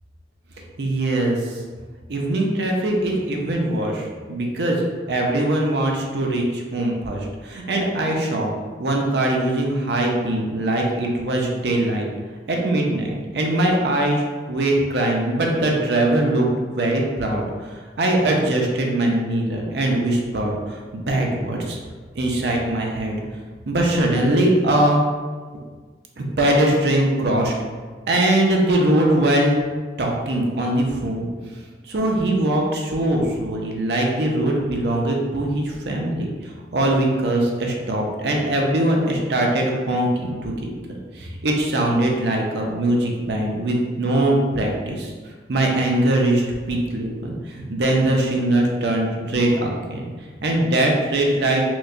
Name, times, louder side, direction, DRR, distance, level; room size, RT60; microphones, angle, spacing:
voice 1, 0.8-1.6 2.1-4.8 5.1-8.5 8.8-12.1 12.5-14.2 14.5-21.8 22.2-23.2 23.7-25.0 26.2-27.5 28.1-29.6 30.0-31.3 31.8-36.3 36.7-45.1 45.5-50.1 50.4-51.6, right 1 dB, 70° right, 0 dB, 0.5 m, -21 dB
4.5 x 2.2 x 2.5 m, 1.5 s
head